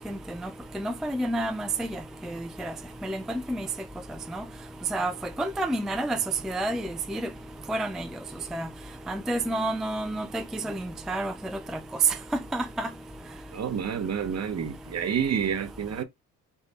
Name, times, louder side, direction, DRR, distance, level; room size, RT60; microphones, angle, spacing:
voice 1, 0.7-2.0 2.3-2.7 3.0-3.2 3.5-3.7 4.3-4.4 4.9-5.1 5.4-6.2 6.4-7.2 7.7-8.1 8.5-8.7 9.1-11.3 12.5-12.9, right 1 dB, ahead, 0.3 m, -29 dB
voice 2, 13.5-16.0, right 7 dB, 45° right, 0.9 m, -29 dB
3.3 x 2.3 x 4.0 m
supercardioid pair, 65°, 37 cm